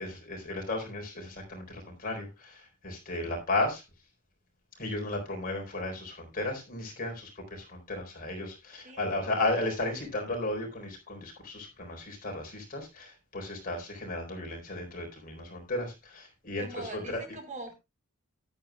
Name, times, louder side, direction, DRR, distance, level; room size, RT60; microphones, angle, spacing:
voice 1, 0.0-3.8 4.8-17.2, left 2 dB, 40° left, 2 dB, 4.1 m, -34 dB
voice 2, 16.6-17.7, right 2 dB, 35° right, 6 dB, 1.7 m, -42 dB
13.0 x 10.5 x 2.3 m, 0.24 s
head